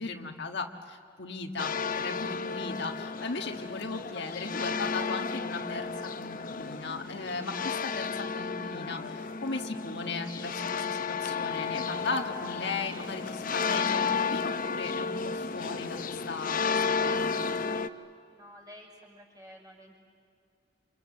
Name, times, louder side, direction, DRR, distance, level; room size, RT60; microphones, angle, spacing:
voice 1, 0.0-17.3, left 3 dB, 65° left, 3 dB, 1.6 m, -37 dB
sound 1, 1.6-17.9, left 5 dB, 45° left, 0.8 m, -33 dB
voice 2, 18.3-20.0, equal, 20° right, -1 dB, 6.1 m, -51 dB
28.5 x 27.0 x 7.7 m, 2.4 s
head